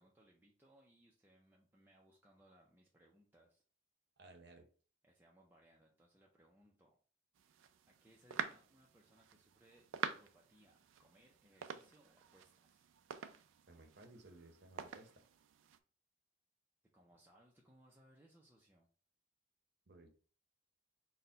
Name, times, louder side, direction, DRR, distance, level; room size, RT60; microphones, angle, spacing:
voice 1, 0.0-3.6 5.0-7.0 7.9-12.9 16.9-18.9, right 1 dB, 10° right, -2 dB, 0.4 m, -68 dB
voice 2, 4.2-4.6 13.7-15.1 19.9-20.1, right 2 dB, 55° right, 4 dB, 0.7 m, -58 dB
sound 1, 7.3-15.8, right 7 dB, 75° right, 0.3 m, -48 dB
4.2 x 2.1 x 3.8 m, 0.41 s
head